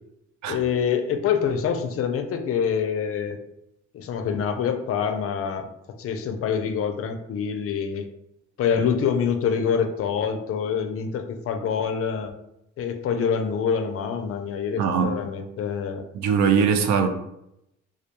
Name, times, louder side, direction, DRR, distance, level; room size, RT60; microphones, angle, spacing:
voice 1, 0.5-3.4 3.9-5.7 6.0-8.1 8.6-12.3 12.8-16.0, left 7 dB, 50° left, 0.4 m, -26 dB
voice 2, 14.8-15.1 16.1-17.1, right 6 dB, 70° right, 0.4 m, -21 dB
2.3 x 2.1 x 2.8 m
cardioid pair, 90°, 30 cm